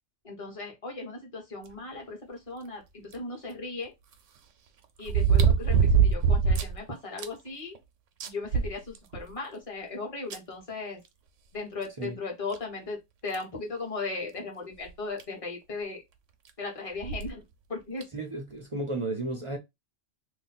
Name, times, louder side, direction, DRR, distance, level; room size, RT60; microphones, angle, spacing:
voice 1, 0.2-3.9 5.0-7.7 8.2-11.0 11.5-16.0 16.6-18.1, left 3 dB, 30° left, 1.1 m, -37 dB
sound 1, 3.1-3.2 5.1-6.8 7.2-7.3 7.7-7.8 8.2-9.3 10.3-10.4 11.9-12.0 12.5-12.6 13.3-13.6 14.9-15.0 15.2-15.3 17.0-17.3 18.0-18.1, right 6 dB, 90° right, 1.0 m, -23 dB
voice 2, 18.1-19.6, right 2 dB, 40° right, 0.5 m, -33 dB
2.7 x 2.1 x 4.0 m
omnidirectional pair, 1.2 m